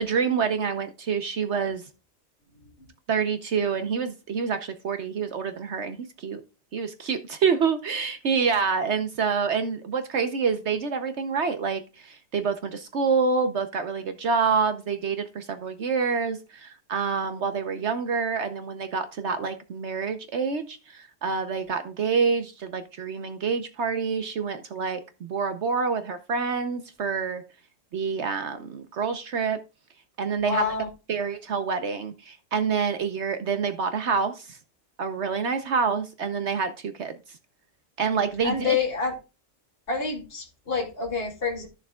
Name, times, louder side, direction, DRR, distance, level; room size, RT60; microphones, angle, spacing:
voice 1, 0.0-1.8 3.1-6.4 6.7-27.4 27.9-29.6 30.2-30.6 31.1-34.6 35.0-37.4 38.0-38.8, right 5 dB, 65° right, 1.1 m, -27 dB
voice 2, 30.4-30.9 38.4-39.1 39.9-41.7, left 5 dB, 50° left, 2.6 m, -27 dB
14.0 x 6.7 x 2.3 m
omnidirectional pair, 1.3 m